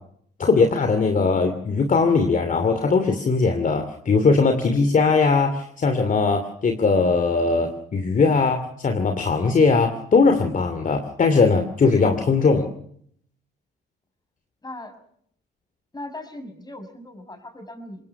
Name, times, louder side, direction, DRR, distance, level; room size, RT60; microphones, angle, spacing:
voice 1, 0.4-12.7, left 4 dB, 40° left, 7 dB, 2.8 m, -20 dB
voice 2, 14.6-15.0 15.9-18.1, left 1 dB, 20° left, 8 dB, 6.3 m, -38 dB
25.5 x 21.0 x 5.9 m, 0.65 s
cardioid pair, 90°, 20 cm